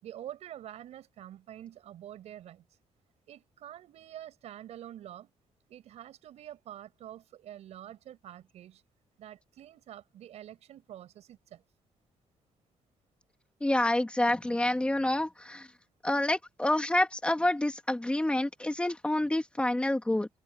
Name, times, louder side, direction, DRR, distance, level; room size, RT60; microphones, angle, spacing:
voice 1, 0.0-2.7 3.3-5.3 5.7-8.8 9.2-11.6, right 11 dB, 80° right, 6.3 m, -47 dB
voice 2, 13.6-15.7 16.0-20.3, left 1 dB, 10° left, 2.1 m, -28 dB
open air
cardioid pair, 115°, 11 cm